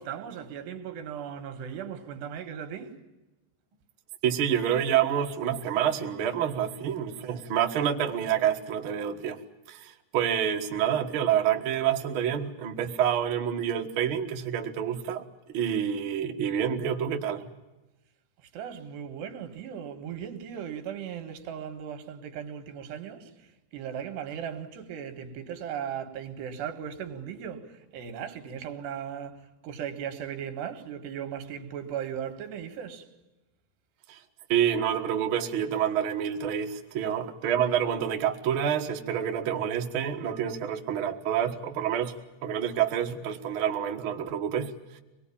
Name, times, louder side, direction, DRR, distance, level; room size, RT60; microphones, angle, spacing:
voice 1, 0.0-3.0 18.5-23.3 23.7-33.1, right 8 dB, 80° right, 3.9 m, -37 dB
voice 2, 4.2-9.4 9.7-15.2 15.5-17.5 34.1-34.2 34.5-42.2 42.4-45.0, right 9 dB, 60° right, 1.3 m, -28 dB
24.5 x 20.5 x 8.6 m
omnidirectional pair, 4.8 m